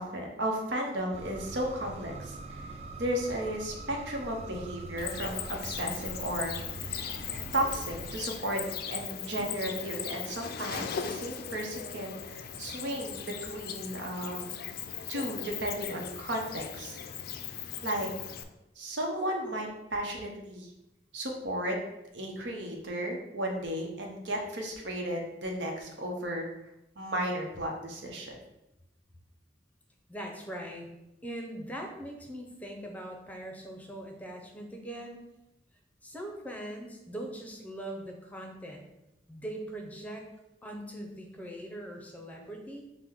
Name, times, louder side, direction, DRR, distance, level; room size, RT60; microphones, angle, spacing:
voice 1, 0.0-6.9 7.5-14.6 15.1-17.0 17.8-18.1 18.8-20.7 21.1-21.8 22.1-26.5 27.0-28.4, right 1 dB, 90° right, 1 dB, 0.8 m, -34 dB
sound 1, 1.1-8.1, right 2 dB, 35° right, 0.3 m, -43 dB
Cricket, 5.0-18.4, left 8 dB, 55° left, 0.3 m, -39 dB
voice 2, 30.1-30.9 31.2-35.2 36.0-38.9 39.3-40.3 40.6-42.8, right 1 dB, 10° left, 2 dB, 0.6 m, -41 dB
6.0 x 2.1 x 3.6 m, 0.92 s
head